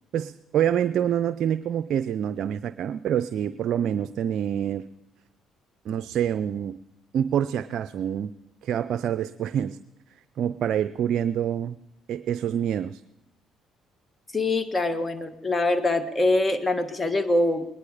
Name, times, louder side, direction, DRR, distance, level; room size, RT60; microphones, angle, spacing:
voice 1, 0.1-4.8 5.9-6.8 7.1-8.3 8.6-9.8 10.4-11.8 12.1-13.0, right 9 dB, 65° right, 12 dB, 0.4 m, -26 dB
voice 2, 14.3-17.7, left 2 dB, 25° left, 11 dB, 1.5 m, -24 dB
20.5 x 10.5 x 4.9 m, 0.91 s
supercardioid pair, 65°, 0 cm